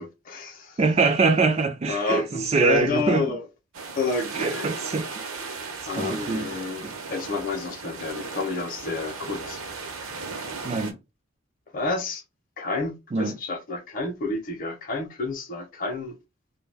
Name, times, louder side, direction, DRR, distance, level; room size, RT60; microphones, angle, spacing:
voice 1, 0.0-0.8 1.9-3.4 3.9-4.7 5.9-6.8 7.1-9.6 11.7-12.2 12.6-16.1, left 3 dB, 40° left, 0.6 m, -29 dB
voice 2, 0.8-3.4 4.4-5.1 6.0-6.5 6.8-6.9 10.6-11.0 13.1-13.4, right 4 dB, 30° right, 0.3 m, -23 dB
sound 1, 3.7-10.9, right 4 dB, 80° right, 0.7 m, -36 dB
2.2 x 2.2 x 3.2 m
head